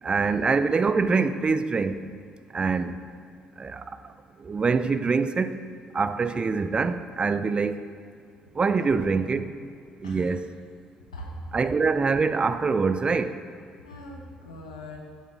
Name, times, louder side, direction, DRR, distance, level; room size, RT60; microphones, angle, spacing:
voice 1, 0.0-2.0 2.5-3.0 3.6-5.6 5.9-7.8 8.5-9.5 10.0-10.5 11.5-13.4, right 4 dB, 30° right, 12 dB, 0.6 m, -25 dB
voice 2, 8.8-9.1 9.3-9.7 10.0-10.3 11.1-11.6 13.8-15.0, left 1 dB, 85° left, -1 dB, 1.2 m, -41 dB
12.0 x 7.2 x 4.6 m, 2.2 s
figure-of-eight pair, 50°, 3 cm